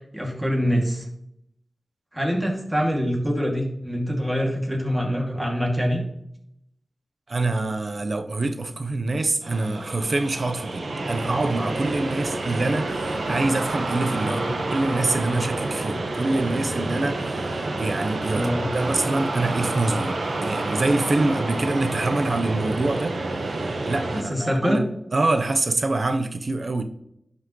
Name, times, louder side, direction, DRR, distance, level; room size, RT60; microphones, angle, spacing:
voice 1, 0.1-1.0 2.1-6.0 14.3-14.5 16.8-16.9 18.3-18.7 24.3-24.8, equal, 10° right, 2.4 m, -24 dB
voice 2, 7.3-14.4 14.7-24.9 25.1-26.8, right 2 dB, 60° right, 0.8 m, -25 dB
sound 1, 9.4-24.2, right 2 dB, 80° right, 1.1 m, -28 dB
11.5 x 5.5 x 3.1 m
wide cardioid pair, 55°, 0 cm